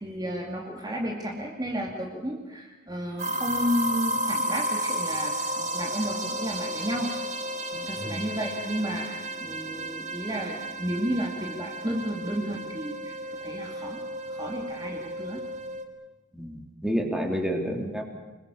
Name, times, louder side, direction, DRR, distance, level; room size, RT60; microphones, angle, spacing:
voice 1, 0.0-7.1 7.7-13.2 13.4-14.0 14.3-15.4, equal, 20° right, 0 dB, 2.5 m, -32 dB
sound 1, 3.2-15.8, right 1 dB, 35° right, 2.1 m, -33 dB
voice 2, 16.3-18.0, equal, 5° right, 2 dB, 3.2 m, -29 dB
27.5 x 21.0 x 7.1 m, 1.2 s
head